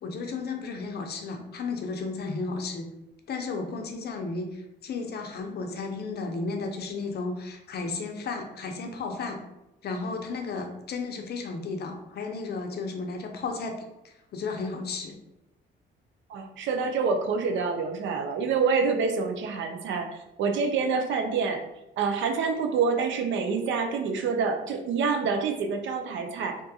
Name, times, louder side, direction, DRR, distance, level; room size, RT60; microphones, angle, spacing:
voice 1, 0.0-2.9 3.3-9.4 9.8-15.2, left 4 dB, 55° left, 4 dB, 0.5 m, -33 dB
voice 2, 16.3-21.6 22.0-26.6, right 5 dB, 70° right, 4 dB, 0.4 m, -27 dB
2.5 x 2.3 x 2.7 m, 0.91 s
cardioid pair, 90°, 20 cm